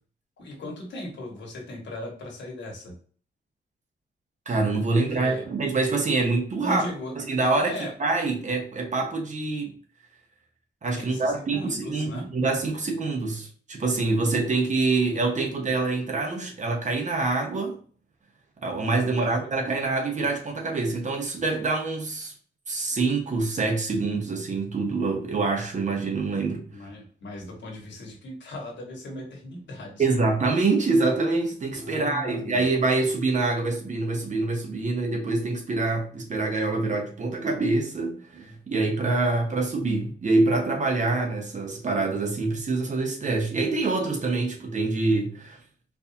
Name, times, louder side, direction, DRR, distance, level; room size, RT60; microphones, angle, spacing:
voice 1, 0.4-3.0 5.1-5.4 6.6-7.1 7.7-7.9 10.9-12.3 19.1-19.4 19.6-19.8 26.7-30.1 31.7-32.6, left 1 dB, 80° left, 1.5 m, -38 dB
voice 2, 4.5-6.8 7.2-7.7 8.0-9.7 10.8-17.8 18.6-22.3 22.7-26.6 30.0-45.6, right 3 dB, 40° right, 1.0 m, -25 dB
4.6 x 2.7 x 2.8 m
wide cardioid pair, 120°, 19 cm